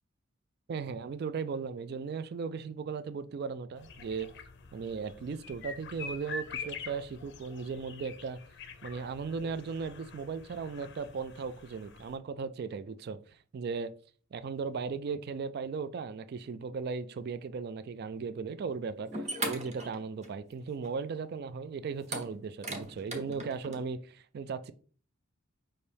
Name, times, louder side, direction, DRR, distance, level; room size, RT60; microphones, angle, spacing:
voice 1, 0.7-4.3 4.7-8.4 8.8-13.9 14.3-24.7, right 5 dB, 50° right, 0.3 m, -37 dB
sound 1, 3.8-12.1, left 4 dB, 55° left, 0.6 m, -45 dB
sound 2, 18.7-18.8 19.1-20.5 20.8-20.9 22.0-23.8, right 1 dB, 30° right, 0.9 m, -38 dB
5.5 x 2.7 x 3.3 m
head